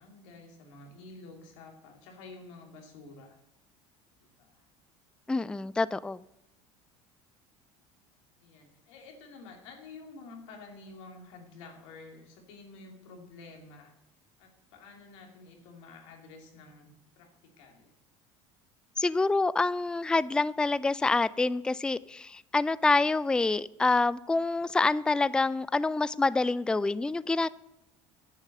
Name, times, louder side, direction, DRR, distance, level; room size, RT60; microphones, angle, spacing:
voice 1, 0.0-3.4 4.4-4.7 8.4-13.9 14.4-16.9 17.2-17.9, left 3 dB, 80° left, 3 dB, 2.5 m, -50 dB
voice 2, 5.3-6.2 19.0-27.5, left 3 dB, 5° left, 19 dB, 0.3 m, -27 dB
10.5 x 7.3 x 6.5 m, 0.86 s
hypercardioid pair, 80°, 15 cm